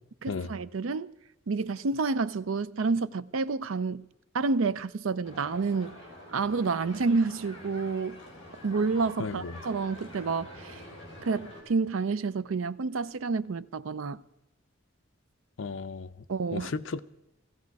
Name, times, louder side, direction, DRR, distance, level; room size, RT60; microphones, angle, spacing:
voice 1, 0.2-1.1 1.5-4.0 4.3-6.0 6.3-8.2 8.6-10.8 11.2-14.2 16.3-16.7, right 4 dB, 85° right, 0.5 m, -29 dB
sound 1, 5.2-11.6, left 1 dB, 30° left, 4.5 m, -46 dB
voice 2, 9.2-9.5 15.6-16.1 16.5-17.0, left 4 dB, 70° left, 0.5 m, -34 dB
15.5 x 15.5 x 4.7 m
head